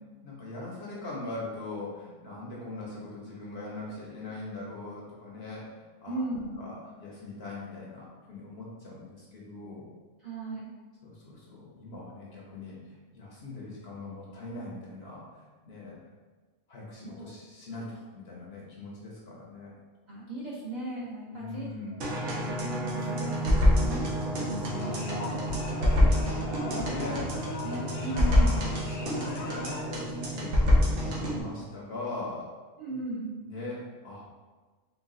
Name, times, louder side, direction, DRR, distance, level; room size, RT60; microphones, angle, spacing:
voice 1, 0.2-6.3 6.6-9.9 11.0-15.9 16.7-19.7 21.3-22.0 26.7-27.3 28.5-32.5 33.4-34.2, left 2 dB, 55° left, -4 dB, 0.9 m, -41 dB
voice 2, 6.1-6.7 10.2-10.7 17.1-17.2 20.1-22.2 22.6-24.0 24.4-26.2 26.8-27.2 27.6-28.7 32.8-33.4, right 1 dB, 40° right, -8 dB, 0.9 m, -38 dB
sound 1, 22.0-31.4, equal, 65° right, 1.1 m, -27 dB
sound 2, 24.7-30.1, left 2 dB, 80° left, 1.0 m, -39 dB
4.0 x 2.3 x 3.6 m, 1.3 s
omnidirectional pair, 1.4 m